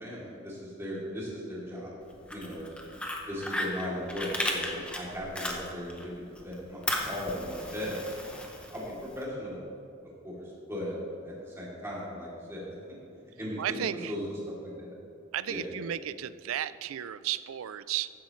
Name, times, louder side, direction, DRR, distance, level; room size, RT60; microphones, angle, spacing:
voice 1, 0.0-2.0 2.3-2.7 3.3-8.0 8.6-9.6 10.2-10.9 11.2-12.7 13.4-14.9 15.5-15.7, equal, 15° right, -6 dB, 2.9 m, -37 dB
Fire, 2.1-6.0 6.4-9.2, left 1 dB, 5° left, 0.9 m, -35 dB
voice 2, 13.6-14.1 15.3-18.1, right 11 dB, 80° right, 16 dB, 0.4 m, -34 dB
14.5 x 10.5 x 3.2 m, 2.5 s
head